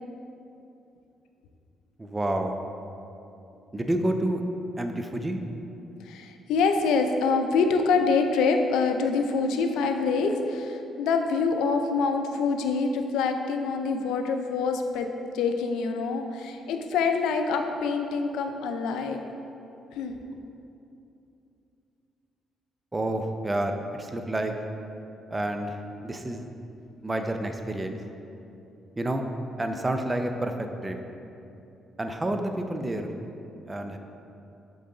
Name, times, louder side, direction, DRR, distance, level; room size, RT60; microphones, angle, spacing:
voice 1, 2.0-2.6 3.7-4.4 4.8-5.4 22.9-24.5 25.3-26.4 27.0-28.0 29.0-29.2 29.6-31.0 32.0-33.1 33.7-34.0, right 1 dB, 20° right, 5 dB, 0.5 m, -29 dB
voice 2, 6.0-15.1 15.3-19.2 19.9-20.2, left 4 dB, 90° left, 5 dB, 0.4 m, -25 dB
6.7 x 4.0 x 3.8 m, 2.8 s
cardioid pair, 90°, 0 cm